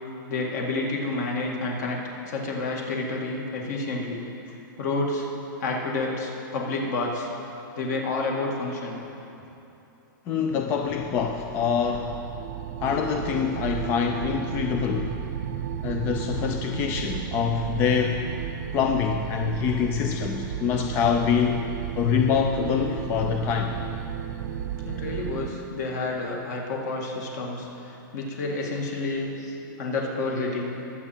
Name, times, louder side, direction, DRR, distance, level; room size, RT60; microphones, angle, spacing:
voice 1, 0.3-4.2 4.8-5.3 5.6-7.3 7.7-9.0 24.8-30.8, left 2 dB, 50° left, 0 dB, 2.2 m, -29 dB
voice 2, 10.3-12.2 12.8-15.2 15.8-18.3 18.7-21.6 22.0-23.8, left 7 dB, 20° left, 4 dB, 0.4 m, -25 dB
sound 1, 10.9-25.5, right 9 dB, 55° right, 0.6 m, -33 dB
20.5 x 7.7 x 4.4 m, 2.9 s
supercardioid pair, 165°, 11 cm